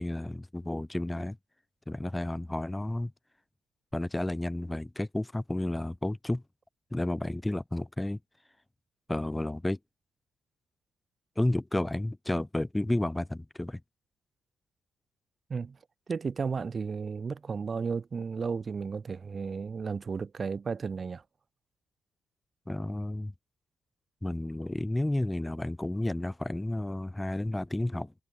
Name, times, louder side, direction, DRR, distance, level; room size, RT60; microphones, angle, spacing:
voice 1, 0.0-1.4 1.9-3.1 3.9-6.4 6.9-8.2 9.1-9.8 11.4-13.8 22.7-23.3 24.2-28.1, left 1 dB, 10° left, 1.7 m, -31 dB
voice 2, 16.1-21.2, right 5 dB, 40° right, 1.3 m, -33 dB
hypercardioid pair, 40°, 0 cm